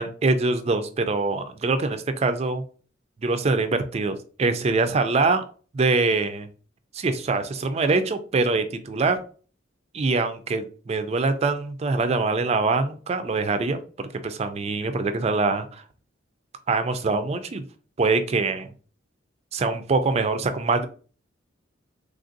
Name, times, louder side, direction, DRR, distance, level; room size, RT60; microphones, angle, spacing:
voice 1, 0.0-2.6 3.2-5.4 5.7-6.5 6.9-9.2 9.9-13.8 14.2-15.8 16.7-17.6 18.0-18.7 19.5-20.9, right 3 dB, 30° right, 9 dB, 0.3 m, -24 dB
3.4 x 2.5 x 2.5 m, 0.39 s
head